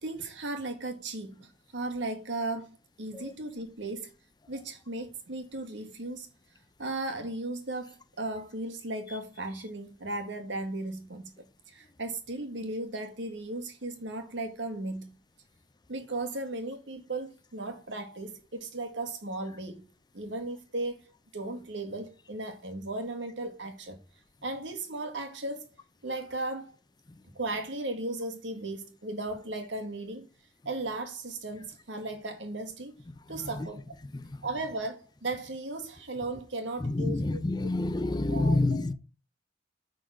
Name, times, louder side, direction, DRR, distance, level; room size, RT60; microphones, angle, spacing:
voice 1, 0.0-4.1 4.5-6.3 6.8-11.3 11.7-15.2 15.9-19.9 20.1-21.0 21.3-24.0 24.4-25.7 26.0-26.7 27.4-30.3 30.7-32.9 33.3-34.0 34.4-37.4 38.3-38.9, right 2 dB, 80° right, 1.7 m, -36 dB
voice 2, 33.3-33.7 34.1-34.4 36.8-38.9, left 2 dB, 20° left, 0.5 m, -28 dB
8.9 x 4.0 x 6.3 m
head